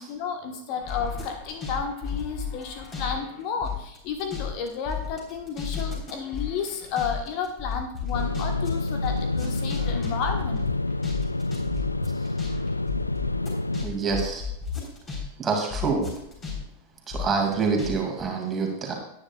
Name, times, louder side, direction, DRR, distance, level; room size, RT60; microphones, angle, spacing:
voice 1, 0.0-10.6 12.0-12.7, left 6 dB, 45° left, 5 dB, 1.3 m, -32 dB
sound 1, 0.8-3.2 3.4-15.2 15.5-17.9 18.2-18.3, left 6 dB, 25° left, 3.9 m, -33 dB
sound 2, 8.1-13.9, left 2 dB, 85° left, 0.3 m, -28 dB
voice 2, 13.8-14.4 15.4-16.1 17.1-18.9, right 5 dB, 20° right, 1 dB, 2.4 m, -26 dB
17.5 x 9.8 x 2.4 m, 0.76 s
figure-of-eight pair, 90°, 0 cm